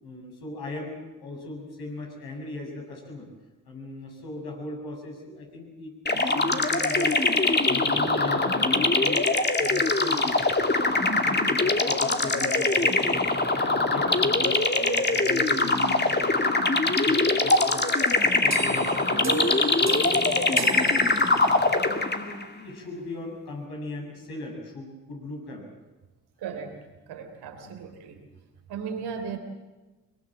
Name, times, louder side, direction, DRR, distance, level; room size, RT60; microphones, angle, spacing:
voice 1, 0.0-3.3 3.6-7.2 7.4-9.2 9.6-10.4 10.8-13.3 13.5-16.5 16.9-19.5 19.8-21.2 21.7-25.7 27.6-27.8, left 2 dB, 75° left, 0 dB, 7.7 m, -38 dB
sound 1, 6.1-22.4, left 2 dB, 25° left, 2.3 m, -23 dB
sound 2, 18.5-21.8, right 5 dB, 45° right, 2.6 m, -35 dB
voice 2, 26.4-28.2 28.7-29.4, right 6 dB, 80° right, 5 dB, 3.5 m, -36 dB
23.0 x 22.5 x 7.7 m, 1.1 s
hypercardioid pair, 45°, 38 cm